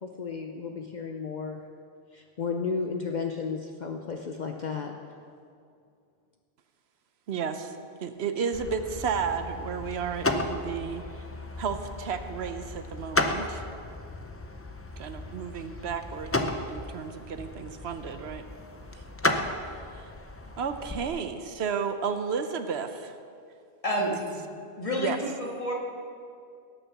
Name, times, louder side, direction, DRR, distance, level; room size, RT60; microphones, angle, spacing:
voice 1, 0.0-1.6 2.1-4.9, left 5 dB, 50° left, 3 dB, 0.7 m, -33 dB
voice 2, 7.3-7.7 8.0-11.0 11.6-13.6 15.0-18.4 20.6-23.1 24.0-24.1 25.0-25.2, right 6 dB, 80° right, 9 dB, 1.0 m, -32 dB
sound 1, 8.5-21.1, left 2 dB, 15° left, 0.5 m, -34 dB
voice 3, 23.8-24.4 24.8-25.7, equal, 30° left, -2 dB, 2.1 m, -29 dB
18.0 x 6.7 x 5.9 m, 2.4 s
omnidirectional pair, 1.1 m